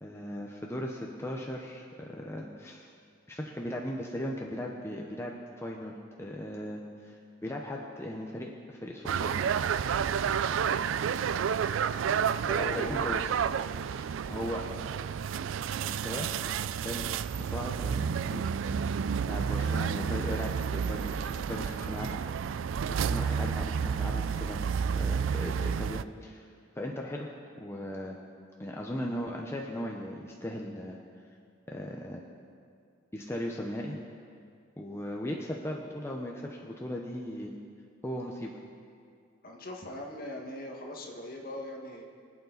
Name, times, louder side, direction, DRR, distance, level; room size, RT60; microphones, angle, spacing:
voice 1, 0.0-2.9 3.3-7.2 7.4-9.8 12.6-13.3 14.0-14.6 15.8-16.3 16.8-18.4 18.7-18.8 19.2-22.2 22.8-26.5 26.7-28.2 28.6-31.0 31.7-32.2 33.1-34.0 34.8-37.5 38.0-38.5, left 1 dB, 15° left, -1 dB, 0.8 m, -38 dB
sound 1, 9.1-26.0, right 7 dB, 80° right, 0.3 m, -30 dB
voice 2, 12.5-13.0 39.4-42.1, left 1 dB, 50° left, 1 dB, 1.6 m, -40 dB
23.0 x 8.3 x 4.0 m, 2.3 s
head